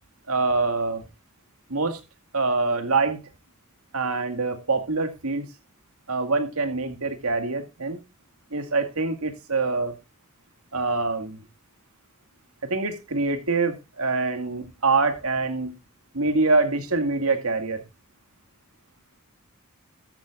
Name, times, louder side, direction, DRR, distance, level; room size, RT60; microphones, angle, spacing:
voice 1, 0.3-1.0 1.7-2.0 2.3-3.2 3.9-5.5 6.1-8.0 8.5-9.9 10.7-11.4 12.6-15.8 16.1-17.8, right 3 dB, 90° right, 2.2 m, -25 dB
13.5 x 13.5 x 2.5 m
head